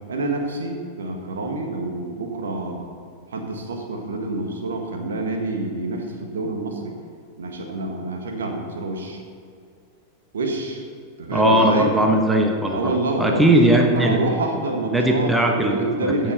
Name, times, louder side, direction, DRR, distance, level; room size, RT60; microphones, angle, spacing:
voice 1, 0.0-2.9 3.3-6.9 7.4-9.2 10.3-10.8 11.2-11.9 12.7-13.5 13.9-16.3, right 2 dB, 65° right, 3 dB, 1.6 m, -27 dB
voice 2, 11.3-12.9 13.2-14.2 14.8-16.3, right 1 dB, 5° right, 2 dB, 1.2 m, -19 dB
15.5 x 5.7 x 5.6 m, 2.3 s
figure-of-eight pair, 90°, 0 cm